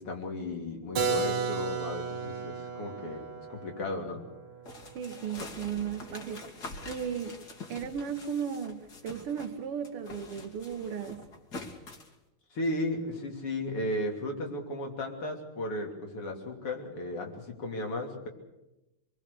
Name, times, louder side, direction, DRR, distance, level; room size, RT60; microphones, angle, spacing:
voice 1, 0.0-4.2 12.5-18.3, left 1 dB, 85° left, 2 dB, 4.0 m, -35 dB
Keyboard (musical), 1.0-6.6, right 6 dB, 65° right, 2.1 m, -35 dB
sound 1, 4.7-9.6 9.8-12.1, left 3 dB, 45° left, 2.8 m, -45 dB
voice 2, 5.0-6.5 6.8-7.4 7.7-11.2, right 7 dB, 90° right, 5 dB, 2.1 m, -35 dB
26.5 x 21.0 x 6.8 m, 0.96 s
omnidirectional pair, 2.4 m